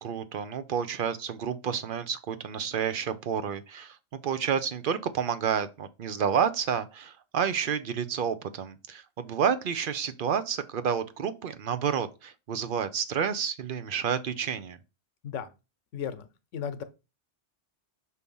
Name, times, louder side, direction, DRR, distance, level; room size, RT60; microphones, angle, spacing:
voice 1, 0.0-4.0 4.2-14.8, right 7 dB, 55° right, 0.7 m, -30 dB
voice 2, 15.9-16.3 16.5-16.8, left 8 dB, 90° left, 1.1 m, -34 dB
6.4 x 2.8 x 5.3 m
omnidirectional pair, 1.2 m